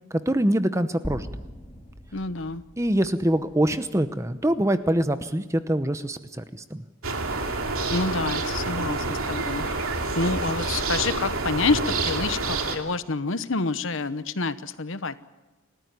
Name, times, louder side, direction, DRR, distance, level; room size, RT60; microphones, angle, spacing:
voice 1, 0.1-1.3 2.8-6.8, right 1 dB, 15° right, 11 dB, 0.8 m, -24 dB
sound 1, 1.0-5.3, equal, 15° left, 4.1 m, -42 dB
voice 2, 2.1-2.6 7.9-9.6 10.1-15.2, left 3 dB, 65° left, 13 dB, 1.0 m, -28 dB
sound 2, 7.0-12.8, right 3 dB, 80° right, 2.8 m, -28 dB
29.5 x 14.0 x 9.6 m, 1.1 s
head